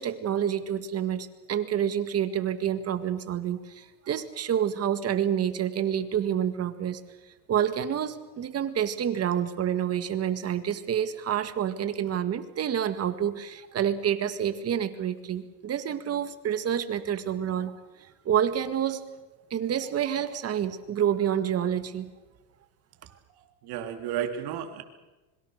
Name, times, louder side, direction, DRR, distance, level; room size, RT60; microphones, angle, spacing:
voice 1, 0.0-7.0 7.5-19.0 19.5-22.1, right 9 dB, 30° right, 11 dB, 1.8 m, -28 dB
voice 2, 23.3-24.8, right 9 dB, 55° right, 5 dB, 3.4 m, -33 dB
26.0 x 22.5 x 6.6 m, 1.1 s
supercardioid pair, 125°, 45 cm